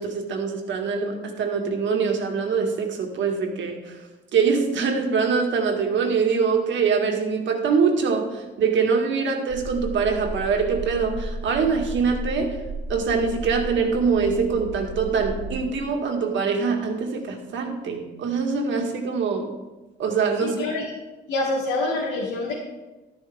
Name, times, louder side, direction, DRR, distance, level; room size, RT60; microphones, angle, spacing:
voice 1, 0.0-4.0 4.3-12.6 12.9-19.5 20.0-20.6, right 5 dB, 70° right, 3 dB, 1.9 m, -24 dB
sound 1, 9.5-16.0, right 1 dB, 65° left, 1.6 m, -34 dB
voice 2, 20.4-20.8 21.3-22.5, left 2 dB, 90° left, -5 dB, 2.3 m, -26 dB
12.0 x 11.0 x 3.6 m, 1.1 s
cardioid pair, 90°, 20 cm